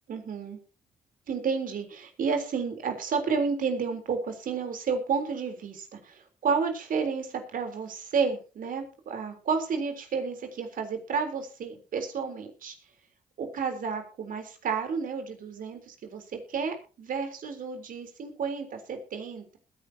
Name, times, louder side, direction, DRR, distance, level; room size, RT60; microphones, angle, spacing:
voice 1, 0.1-0.6 1.3-12.7 13.4-19.6, right 5 dB, 65° right, 6 dB, 3.8 m, -31 dB
21.0 x 10.0 x 2.9 m, 0.34 s
supercardioid pair, 50°, 15 cm